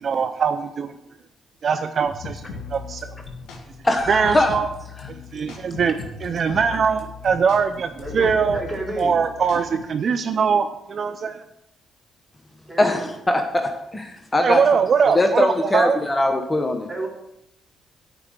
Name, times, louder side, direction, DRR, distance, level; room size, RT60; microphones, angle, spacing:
voice 1, 0.0-0.9 1.6-2.4 2.7-3.1 4.1-4.7 5.1-8.6 9.0-11.4 14.4-16.0, right 6 dB, 55° right, 9 dB, 0.5 m, -22 dB
sound 1, 2.0-9.8, left 5 dB, 75° left, 1.8 m, -38 dB
voice 2, 3.8-4.6 12.8-14.6 15.1-16.9, left 2 dB, 25° left, 5 dB, 1.2 m, -21 dB
voice 3, 8.0-9.1 12.7-13.1 16.9-17.1, right 2 dB, 15° right, -2 dB, 3.9 m, -31 dB
9.8 x 5.0 x 6.4 m, 0.85 s
hypercardioid pair, 50°, 0 cm